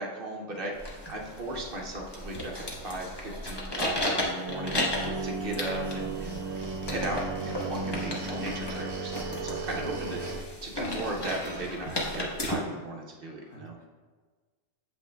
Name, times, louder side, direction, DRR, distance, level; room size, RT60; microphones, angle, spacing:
voice 1, 0.0-10.2 10.6-13.8, right 2 dB, 50° right, 0 dB, 0.9 m, -37 dB
sound 1, 0.7-12.5, left 1 dB, 20° left, 0.8 m, -35 dB
sound 2, 4.5-10.4, right 3 dB, 75° right, 1.1 m, -35 dB
sound 3, 4.9-5.5 5.8-11.8, right 1 dB, 20° right, 1.4 m, -47 dB
voice 2, 9.8-10.4 13.4-13.9, left 3 dB, 60° left, 0 dB, 1.2 m, -46 dB
8.0 x 5.4 x 2.2 m, 1.4 s
omnidirectional pair, 1.4 m